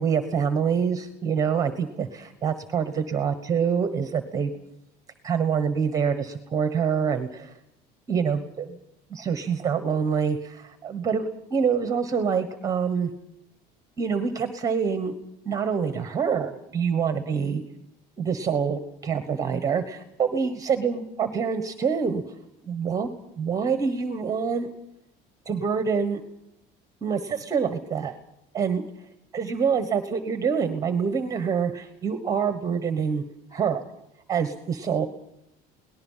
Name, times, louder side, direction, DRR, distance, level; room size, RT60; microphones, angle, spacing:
voice 1, 0.0-4.5 5.2-7.5 8.1-8.8 9.1-13.1 14.0-15.1 15.4-17.6 18.2-22.2 22.7-23.1 23.4-24.7 25.5-26.2 27.0-28.2 28.5-28.8 29.3-33.2 33.5-33.8 34.3-35.1, right 6 dB, 20° right, 9 dB, 1.2 m, -26 dB
28.5 x 19.0 x 5.7 m, 0.80 s
cardioid pair, 180°, 18 cm